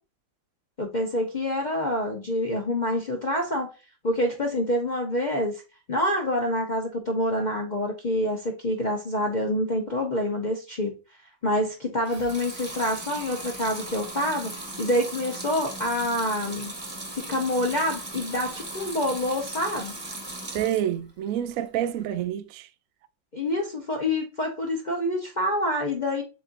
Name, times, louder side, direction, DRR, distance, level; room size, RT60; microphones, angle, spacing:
voice 1, 0.8-3.7 4.0-5.6 5.9-11.0 11.4-14.5 14.8-16.7 17.1-20.0 23.3-26.2, left 1 dB, 70° left, 0.4 m, -27 dB
Water tap faucet / Sink (filling or washing) / Liquid, 12.0-20.9 21.3-22.1, right 2 dB, 15° right, 1.1 m, -38 dB
voice 2, 20.5-22.7, right 11 dB, 75° right, 0.7 m, -28 dB
7.5 x 2.6 x 2.5 m
omnidirectional pair, 2.1 m